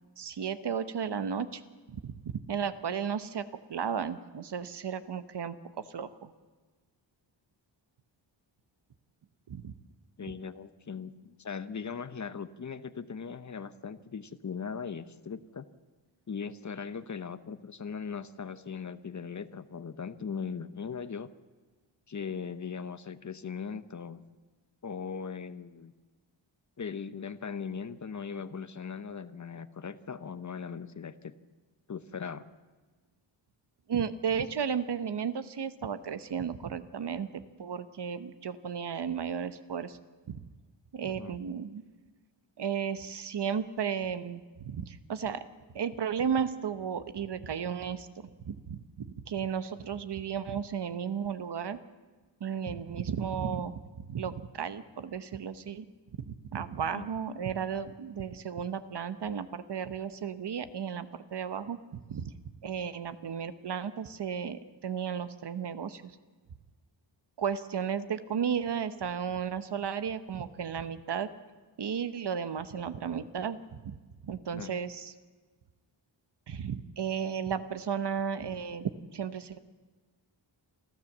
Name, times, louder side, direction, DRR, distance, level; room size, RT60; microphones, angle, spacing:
voice 1, 0.2-1.6 1.9-2.2 2.5-3.4 3.7-5.5 5.9-6.3 9.5-9.7 33.9-40.0 40.3-40.4 40.9-41.8 42.6-45.4 45.7-51.8 52.4-55.9 56.3-62.3 62.6-66.2 67.4-71.3 71.8-74.0 74.2-75.1 76.5-79.6, right 7 dB, 60° right, 12 dB, 1.1 m, -34 dB
voice 2, 10.2-15.7 16.3-21.3 22.1-24.2 24.8-25.9 26.8-31.3 31.9-32.5 41.0-41.4 56.9-57.1 74.5-74.7, left 6 dB, 40° left, 13 dB, 0.9 m, -39 dB
27.0 x 13.0 x 7.4 m, 1.4 s
wide cardioid pair, 115°, 46 cm